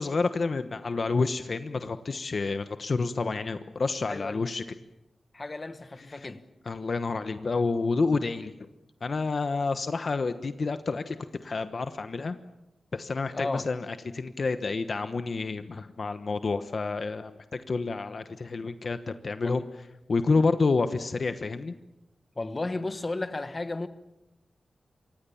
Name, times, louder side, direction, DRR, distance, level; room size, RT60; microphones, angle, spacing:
voice 1, 0.0-4.6 6.7-8.7 9.0-11.2 11.4-12.4 12.9-17.3 17.7-19.6 20.1-21.7, left 4 dB, 45° left, 1.1 m, -29 dB
voice 2, 4.1-4.4 5.3-6.4 13.3-13.7 19.4-19.6 22.4-23.9, left 2 dB, 25° left, 1.4 m, -33 dB
28.0 x 25.0 x 7.2 m
wide cardioid pair, 155°, 0 cm